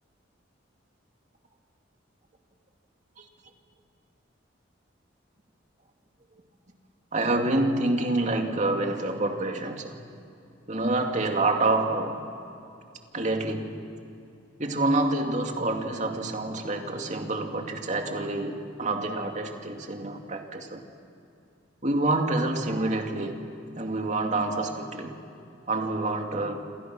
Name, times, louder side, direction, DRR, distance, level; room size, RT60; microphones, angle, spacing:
voice 1, 7.1-9.9 10.7-12.2 13.1-13.8 14.6-20.8 21.8-23.4 23.8-25.1 25.7-26.6, right 2 dB, 40° right, 3 dB, 2.3 m, -27 dB
28.5 x 27.5 x 6.2 m, 2.6 s
head